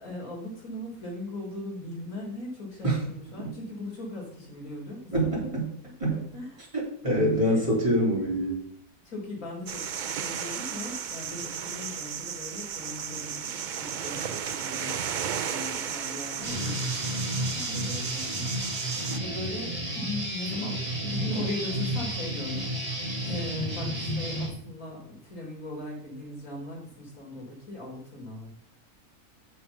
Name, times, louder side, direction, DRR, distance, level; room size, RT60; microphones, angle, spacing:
voice 1, 0.0-5.4 6.0-6.7 7.4-7.7 9.1-15.2 15.4-16.9 17.4-18.4 19.2-28.5, left 2 dB, 85° left, -2 dB, 3.7 m, -39 dB
voice 2, 5.1-5.7 6.0-6.2 6.7-8.6 19.1-19.4, right 1 dB, 20° right, -5 dB, 3.3 m, -26 dB
sound 1, 9.7-19.2, right 8 dB, 70° right, 0.4 m, -34 dB
Guitar, 16.4-24.5, equal, 40° right, 3.6 m, -31 dB
6.9 x 6.9 x 5.3 m, 0.65 s
omnidirectional pair, 1.5 m